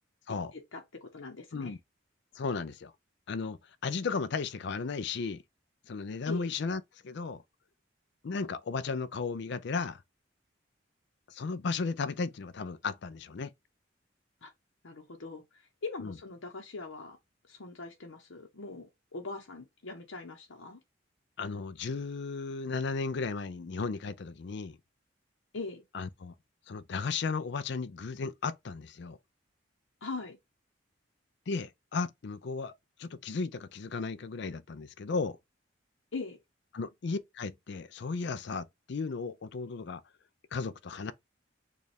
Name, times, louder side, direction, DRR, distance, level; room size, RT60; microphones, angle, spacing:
voice 1, 0.5-1.8 6.2-6.5 14.4-14.5 14.8-17.2 17.5-20.8 25.5-25.8 30.0-30.4 36.1-36.4, left 3 dB, 85° left, 0.9 m, -41 dB
voice 2, 2.4-2.9 3.3-3.6 3.8-5.4 5.9-7.4 8.2-10.0 11.3-13.5 16.0-16.1 21.4-24.8 25.9-26.3 26.7-29.2 31.5-32.7 33.0-35.4 36.7-40.0 40.5-41.1, left 4 dB, 60° left, 0.4 m, -35 dB
6.5 x 2.4 x 3.3 m
head